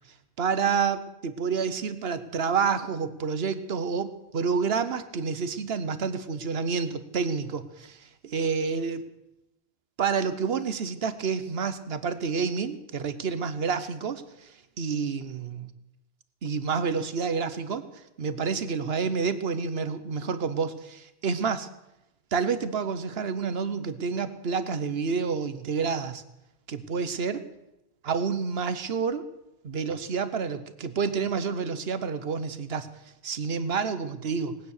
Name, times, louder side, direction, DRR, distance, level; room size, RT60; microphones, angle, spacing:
voice 1, 0.4-9.0 10.0-15.7 16.4-17.8 18.2-21.7 22.3-26.2 26.7-27.4 28.0-29.2 29.6-32.9 33.2-34.6, right 5 dB, 75° right, 12 dB, 1.2 m, -29 dB
19.5 x 9.2 x 6.6 m, 0.91 s
omnidirectional pair, 1.1 m